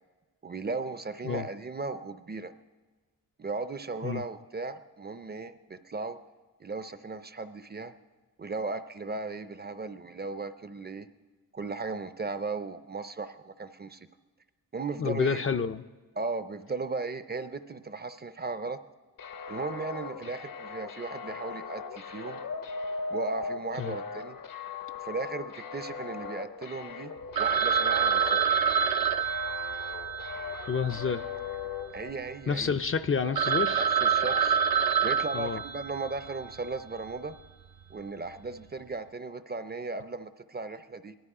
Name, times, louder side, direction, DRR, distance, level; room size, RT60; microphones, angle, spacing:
voice 1, 0.4-2.5 3.4-6.2 6.6-7.9 8.4-11.1 11.5-14.1 14.7-15.4 16.2-18.8 19.5-22.4 23.1-24.4 25.0-27.1 27.4-28.4 31.0-31.1 31.9-32.7 33.2-33.5 33.8-34.6 35.0-37.4 37.9-41.2, right 3 dB, 30° right, 11 dB, 0.5 m, -36 dB
voice 2, 15.0-15.8 23.8-23.9 30.7-31.2 32.5-33.8 35.3-35.6, left 6 dB, 35° left, 9 dB, 0.4 m, -29 dB
sound 1, 19.2-32.1, left 5 dB, 65° left, 0.8 m, -39 dB
Telephone, 27.4-31.7 32.0-32.1 32.6-32.7 33.1-33.2 33.4-36.3, right 7 dB, 75° right, 0.6 m, -27 dB
19.0 x 12.5 x 4.8 m, 1.3 s
wide cardioid pair, 145°, 36 cm